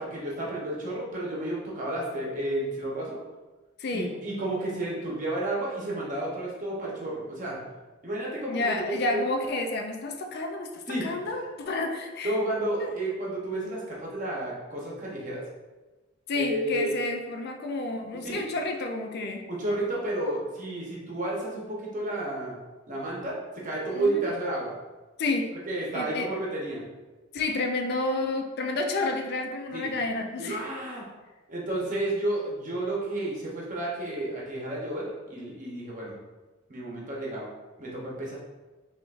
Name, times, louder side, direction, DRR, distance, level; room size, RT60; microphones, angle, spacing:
voice 1, 0.0-3.2 3.9-7.6 8.0-8.8 9.1-9.2 10.9-11.1 12.2-15.4 16.3-16.9 18.1-18.4 19.5-22.6 22.9-24.7 25.7-26.8 29.7-29.9 30.4-31.1 31.5-36.1 36.7-37.5 37.8-38.3, right 1 dB, 40° right, -4 dB, 1.0 m, -31 dB
voice 2, 3.8-4.1 8.5-12.4 12.8-12.9 16.3-19.4 23.9-24.2 25.2-25.5 25.9-26.3 27.3-30.6, left 2 dB, 55° left, 4 dB, 0.4 m, -30 dB
5.7 x 2.5 x 2.5 m, 1.2 s
head